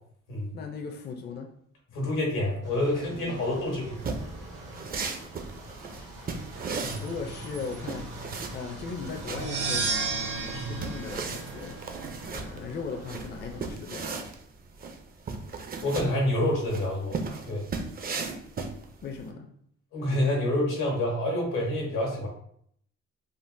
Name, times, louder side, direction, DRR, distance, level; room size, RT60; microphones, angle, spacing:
voice 1, 0.5-1.5 3.1-3.5 7.0-8.1 8.5-11.8 12.3-14.3 19.0-19.5, left 5 dB, 35° left, 3 dB, 0.4 m, -38 dB
voice 2, 1.9-4.0 6.8-7.0 10.5-10.7 15.8-17.2 17.4-17.6 19.9-22.3, left 1 dB, 90° left, -2 dB, 1.3 m, -27 dB
sound 1, 2.6-13.7, right 1 dB, 85° right, 1.1 m, -44 dB
sound 2, 4.0-19.2, right 4 dB, 30° right, 0.4 m, -37 dB
sound 3, 9.2-12.1, right 4 dB, 65° right, 1.0 m, -32 dB
3.7 x 2.1 x 2.5 m, 0.66 s
cardioid pair, 90°, 30 cm